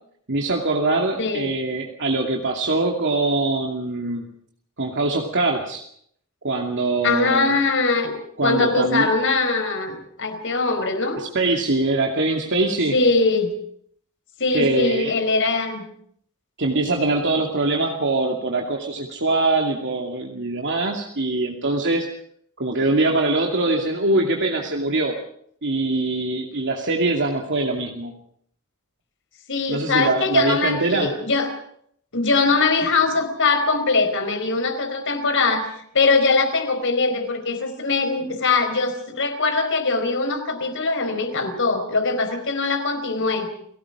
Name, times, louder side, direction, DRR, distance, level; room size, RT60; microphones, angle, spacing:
voice 1, 0.3-4.3 4.8-5.8 6.4-7.6 8.4-9.1 11.2-13.0 14.5-15.2 16.6-22.1 22.6-25.2 25.6-28.1 29.7-31.1, right 2 dB, 60° right, 1 dB, 2.5 m, -23 dB
voice 2, 1.2-1.5 7.0-8.1 8.4-11.2 12.9-13.5 14.4-15.8 29.5-31.5 32.1-43.5, left 3 dB, 60° left, 7 dB, 4.7 m, -22 dB
30.0 x 18.5 x 5.0 m, 0.65 s
head